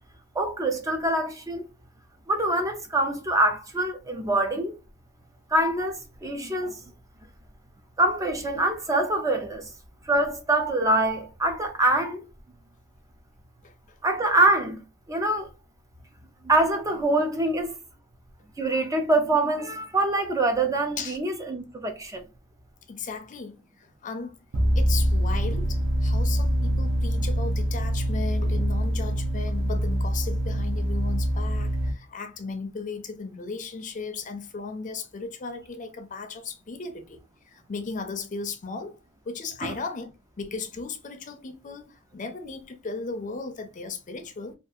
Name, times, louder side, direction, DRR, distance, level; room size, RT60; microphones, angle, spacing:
voice 1, 0.4-1.6 2.3-4.7 5.5-6.8 8.0-9.7 10.1-12.2 14.0-14.8 15.1-15.5 16.4-17.7 18.6-22.2 39.6-39.7, right 2 dB, 15° right, 0.4 m, -24 dB
voice 2, 22.9-24.4 24.8-37.2 37.5-39.0 39.3-40.1 40.4-44.5, left 4 dB, 40° left, 0.5 m, -36 dB
sound 1, 24.5-31.9, equal, 60° right, 0.6 m, -24 dB
2.7 x 2.4 x 2.4 m
head